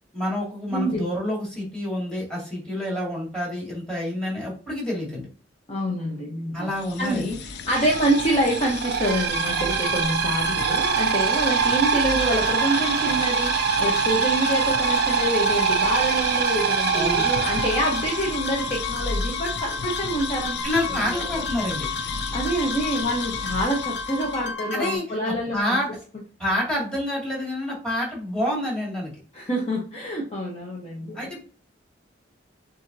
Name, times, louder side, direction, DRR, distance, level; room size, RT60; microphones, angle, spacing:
voice 1, 0.1-5.3 6.5-7.3 16.9-17.3 20.6-21.9 24.7-25.2 25.5-25.9 26.4-29.1 31.1-31.4, left 1 dB, 5° left, -4 dB, 2.3 m, -28 dB
voice 2, 0.7-1.1 5.7-6.7 7.0-7.4 7.7-20.6 20.9-21.5 22.3-25.8 29.3-31.3, right 1 dB, 35° left, -2 dB, 1.0 m, -26 dB
sound 1, 6.7-24.5, left 6 dB, 65° left, 0.5 m, -33 dB
sound 2, 7.8-18.5, right 7 dB, 60° right, 0.4 m, -24 dB
sound 3, 9.1-25.0, left 3 dB, 85° left, 1.1 m, -33 dB
7.1 x 2.8 x 2.7 m, 0.39 s
head